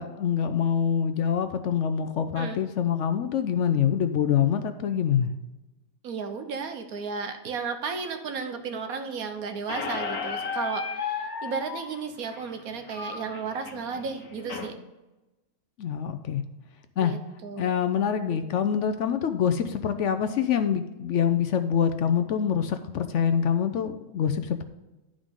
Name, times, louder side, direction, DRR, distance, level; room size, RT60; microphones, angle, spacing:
voice 1, 0.0-5.3 15.8-16.4 17.0-17.1 17.6-24.6, left 8 dB, 65° left, 9 dB, 0.8 m, -25 dB
voice 2, 6.0-14.7 17.0-17.7 18.3-18.4, right 5 dB, 80° right, 7 dB, 1.3 m, -34 dB
Squeak, 9.7-14.7, left 5 dB, 90° left, 1.5 m, -34 dB
11.0 x 5.1 x 3.7 m, 1.0 s
omnidirectional pair, 1.5 m